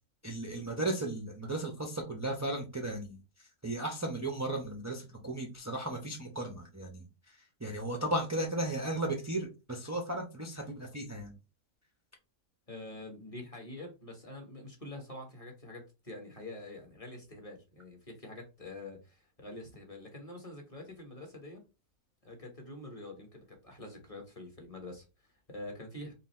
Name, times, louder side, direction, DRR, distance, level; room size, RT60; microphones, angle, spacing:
voice 1, 0.2-11.3, right 1 dB, 20° right, 2 dB, 0.4 m, -36 dB
voice 2, 12.7-21.6 22.2-26.1, left 2 dB, 25° left, 2 dB, 1.1 m, -46 dB
4.0 x 2.5 x 4.2 m, 0.29 s
omnidirectional pair, 1.5 m